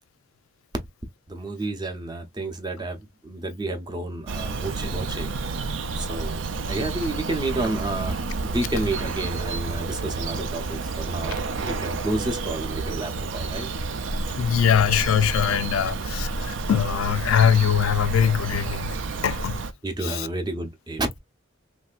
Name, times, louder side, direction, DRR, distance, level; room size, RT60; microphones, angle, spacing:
voice 1, 1.3-6.4 6.7-13.7 15.5-15.6 19.8-21.1, right 2 dB, 20° right, 0.6 m, -30 dB
Bird vocalization bird call bird song, 4.3-19.7, right 3 dB, 65° right, 0.5 m, -30 dB
voice 2, 14.4-19.0 19.2-19.6 20.0-20.3, left 8 dB, 90° left, 0.4 m, -22 dB
3.1 x 2.7 x 2.3 m
head